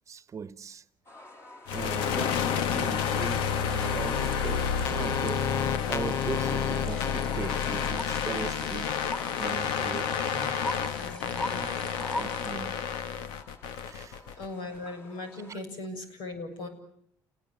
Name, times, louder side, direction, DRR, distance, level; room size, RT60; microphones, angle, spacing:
voice 1, 0.1-0.8 1.7-10.8 11.5-11.8 12.2-12.9 13.9-14.2 15.5-15.6, right 6 dB, 40° right, 1.1 m, -40 dB
sound 1, 1.1-15.5, left 2 dB, 30° left, 5.5 m, -53 dB
sound 2, 1.7-14.5, left 7 dB, 90° left, 1.3 m, -29 dB
voice 2, 1.8-2.9 6.5-6.7 11.0-11.7 14.4-16.7, left 2 dB, 75° left, 7.2 m, -40 dB
sound 3, 2.7-12.5, left 2 dB, 15° left, 6.8 m, -41 dB
29.5 x 19.5 x 9.3 m
cardioid pair, 95°, 8 cm